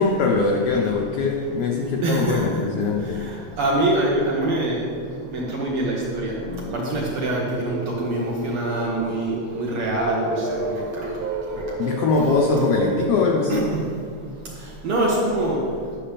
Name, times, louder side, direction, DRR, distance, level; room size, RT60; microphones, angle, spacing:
voice 1, 0.0-3.3 11.8-13.6, left 4 dB, 85° left, 1 dB, 1.3 m, -22 dB
voice 2, 2.0-2.4 3.6-4.9 5.3-6.3 6.7-11.1 11.5-11.6 13.5-13.8 14.8-15.6, right 1 dB, 70° right, -3 dB, 1.4 m, -24 dB
sound 1, 4.5-4.6 5.0-13.1, right 3 dB, 85° right, 2.3 m, -31 dB
9.9 x 5.9 x 3.4 m, 2.3 s
omnidirectional pair, 3.3 m